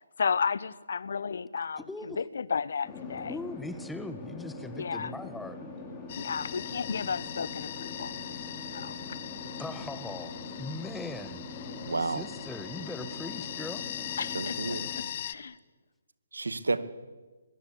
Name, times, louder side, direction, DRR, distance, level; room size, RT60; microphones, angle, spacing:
voice 1, 0.0-3.4 4.7-5.1 6.1-8.2 8.7-9.2 14.2-14.8 15.2-15.6, left 6 dB, 65° left, 20 dB, 1.0 m, -33 dB
voice 2, 1.8-2.2 3.3-5.6 9.6-11.5 12.0-13.9, left 2 dB, 5° left, 11 dB, 1.5 m, -40 dB
sound 1, 2.8-15.0, left 2 dB, 20° left, 6.1 m, -43 dB
sound 2, 6.1-15.3, left 11 dB, 40° left, 1.3 m, -40 dB
voice 3, 11.9-12.2 14.3-14.9 16.3-16.8, right 3 dB, 85° right, 12 dB, 2.3 m, -30 dB
24.0 x 22.5 x 8.6 m, 1.3 s
hypercardioid pair, 150°, 0 cm